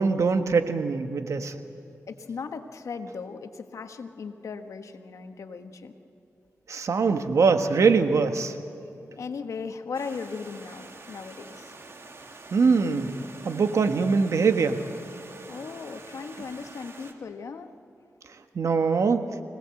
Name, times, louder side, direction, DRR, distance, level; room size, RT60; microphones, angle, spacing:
voice 1, 0.0-1.5 6.7-8.5 12.5-13.1 13.4-14.8 18.5-19.3, right 5 dB, 70° right, 8 dB, 1.5 m, -22 dB
voice 2, 2.1-5.9 9.2-11.7 15.5-17.7, left 5 dB, 80° left, 7 dB, 1.4 m, -37 dB
Stream, 9.9-17.1, right 3 dB, 55° right, 2.6 m, -46 dB
25.5 x 18.5 x 7.8 m, 2.7 s
cardioid pair, 60°, 5 cm